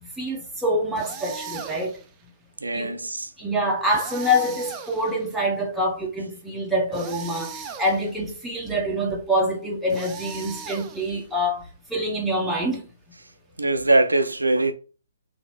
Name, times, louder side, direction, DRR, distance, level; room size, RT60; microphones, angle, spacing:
voice 1, 0.2-1.9 2.7-3.0 3.4-12.8, equal, 5° right, 0.9 m, -26 dB
sound 1, 1.0-2.1 3.9-5.4 6.9-8.2 9.9-11.3, right 6 dB, 20° right, 0.5 m, -38 dB
voice 2, 2.6-3.3 13.6-14.7, right 2 dB, 85° right, 0.6 m, -21 dB
3.4 x 2.9 x 4.1 m
figure-of-eight pair, 135°, 0 cm